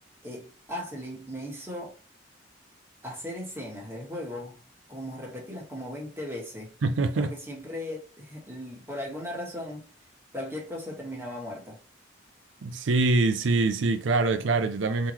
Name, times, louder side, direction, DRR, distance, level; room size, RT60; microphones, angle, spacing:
voice 1, 0.2-1.9 3.0-4.6 4.9-6.7 7.1-9.8 10.3-11.8, left 1 dB, 15° right, 1.4 m, -37 dB
voice 2, 6.8-7.3 12.6-15.1, right 3 dB, 80° right, 0.5 m, -24 dB
3.7 x 3.0 x 4.3 m
head